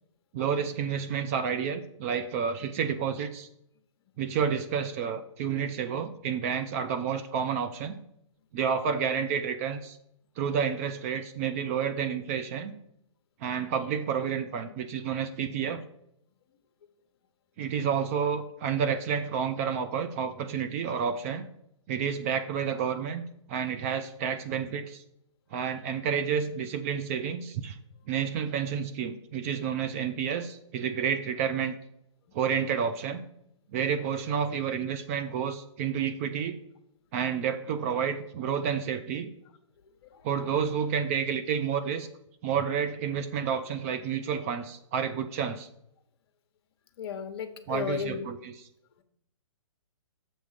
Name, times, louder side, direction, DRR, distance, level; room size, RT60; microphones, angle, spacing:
voice 1, 0.3-3.5 4.2-8.0 8.5-10.0 10.4-12.7 13.4-15.8 17.6-21.5 21.9-23.2 23.5-25.0 25.5-27.8 28.1-31.7 32.3-33.2 33.7-36.6 37.1-39.3 40.2-42.1 42.4-45.7 47.7-48.5, right 7 dB, 25° right, 9 dB, 0.4 m, -30 dB
voice 2, 47.0-48.3, left 7 dB, 45° left, 8 dB, 0.9 m, -34 dB
7.3 x 3.6 x 6.4 m, 0.77 s
hypercardioid pair, 140°, 17 cm